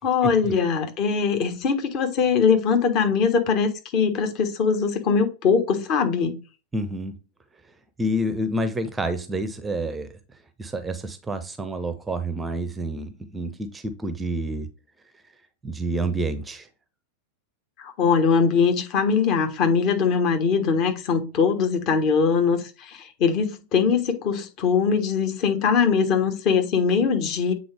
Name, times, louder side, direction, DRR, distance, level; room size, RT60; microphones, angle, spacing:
voice 1, 0.0-6.4 17.8-27.5, left 6 dB, 40° left, 1.2 m, -22 dB
voice 2, 6.7-7.2 8.0-10.1 10.6-14.7 15.6-16.7, right 1 dB, 10° right, 0.6 m, -28 dB
7.8 x 3.8 x 3.3 m
figure-of-eight pair, 90°, 0 cm